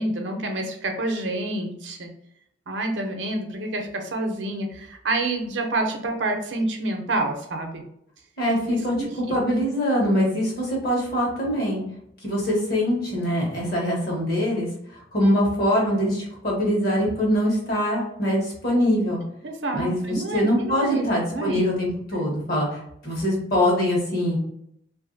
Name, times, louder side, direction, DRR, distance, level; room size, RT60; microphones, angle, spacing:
voice 1, 0.0-2.1 2.7-7.8 9.0-9.1 19.4-21.6 22.1-22.2, right 2 dB, 80° right, 3 dB, 0.6 m, -28 dB
voice 2, 8.4-11.8 12.2-19.2 19.7-24.4, equal, 55° left, -3 dB, 1.2 m, -23 dB
2.7 x 2.6 x 2.6 m, 0.73 s
head